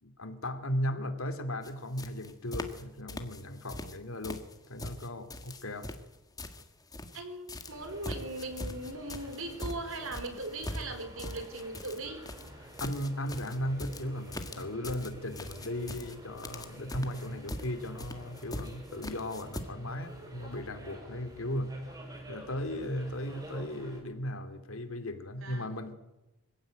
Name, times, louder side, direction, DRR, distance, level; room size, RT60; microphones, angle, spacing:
voice 1, 0.0-5.9 12.6-21.7 22.1-25.9, left 1 dB, 70° left, 8 dB, 2.6 m, -36 dB
sound 1, 1.6-1.7 2.0-2.8 3.1-4.0 4.2-7.2 7.5-19.6, left 1 dB, 20° left, 1.8 m, -42 dB
voice 2, 7.1-12.2 25.4-25.7, right 2 dB, 70° right, 8 dB, 4.5 m, -39 dB
sound 2, 7.7-24.0, right 1 dB, 20° right, 6.6 m, -50 dB
24.5 x 16.0 x 9.3 m, 0.99 s
head